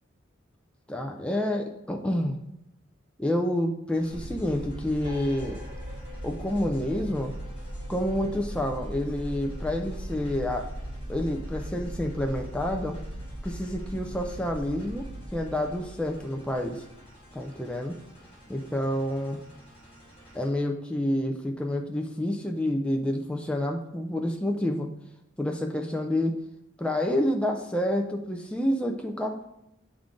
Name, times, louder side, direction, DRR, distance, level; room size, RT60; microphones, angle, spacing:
voice 1, 0.9-2.4 3.2-5.6 6.2-7.3 7.9-10.7 11.1-13.0 13.4-15.1 15.3-16.8 17.3-18.0 18.5-19.4 20.3-24.9 25.4-26.4 26.8-29.4, left 1 dB, 5° left, 2 dB, 0.4 m, -28 dB
sound 1, 3.9-20.5, equal, 30° left, 2.4 m, -53 dB
sound 2, 4.1-17.1, right 1 dB, 45° right, 1.6 m, -39 dB
sound 3, 5.0-12.2, left 2 dB, 20° right, 2.0 m, -50 dB
10.0 x 3.7 x 3.7 m, 0.82 s
head